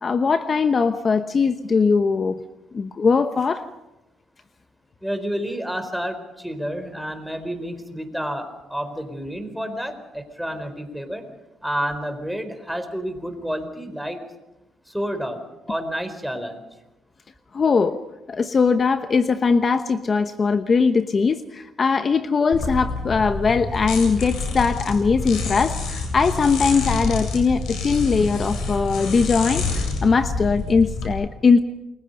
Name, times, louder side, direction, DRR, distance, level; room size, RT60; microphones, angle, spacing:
voice 1, 0.0-2.4 2.7-3.6 17.5-18.0 18.3-31.6, left 5 dB, 40° left, 9 dB, 1.0 m, -20 dB
voice 2, 5.0-11.3 11.6-14.2 14.9-16.6, equal, ahead, 6 dB, 4.4 m, -30 dB
sound 1, 22.5-31.1, left 3 dB, 80° left, 7.9 m, -27 dB
29.0 x 23.0 x 5.4 m, 0.97 s
cardioid pair, 90°, 0 cm